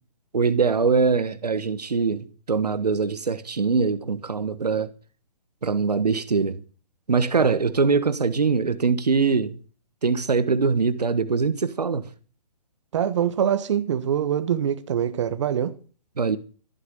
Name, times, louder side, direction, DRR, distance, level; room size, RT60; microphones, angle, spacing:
voice 1, 0.3-4.9 5.6-6.6 7.1-9.6 10.0-12.1 16.2-16.4, right 4 dB, 70° right, 1.4 m, -22 dB
voice 2, 12.9-15.7, right 9 dB, 45° right, 1.3 m, -24 dB
14.0 x 9.6 x 6.8 m
figure-of-eight pair, 135°, 21 cm